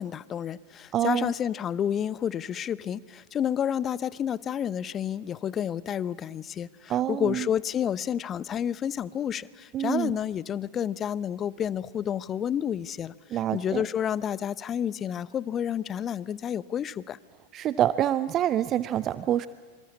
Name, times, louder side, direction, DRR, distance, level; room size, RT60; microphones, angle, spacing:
voice 1, 0.0-17.2, left 9 dB, 25° left, 21 dB, 0.7 m, -30 dB
voice 2, 0.9-1.3 6.9-7.5 9.7-10.1 13.3-13.8 17.5-19.5, right 11 dB, 30° right, 15 dB, 0.7 m, -26 dB
26.5 x 25.0 x 8.4 m, 1.5 s
figure-of-eight pair, 90°, 0 cm